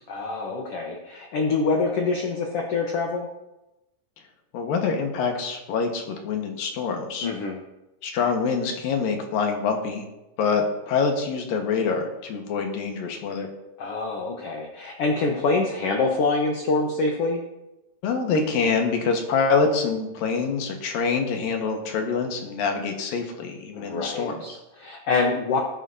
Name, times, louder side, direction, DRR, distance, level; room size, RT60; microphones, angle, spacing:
voice 1, 0.1-3.3 7.2-7.6 13.8-17.4 23.7-25.6, left 3 dB, 65° left, 1 dB, 1.5 m, -25 dB
voice 2, 4.5-7.3 8.0-10.1 10.4-13.5 18.0-24.4, left 5 dB, 85° left, 3 dB, 3.1 m, -25 dB
20.5 x 8.8 x 2.7 m, 0.98 s
omnidirectional pair, 4.0 m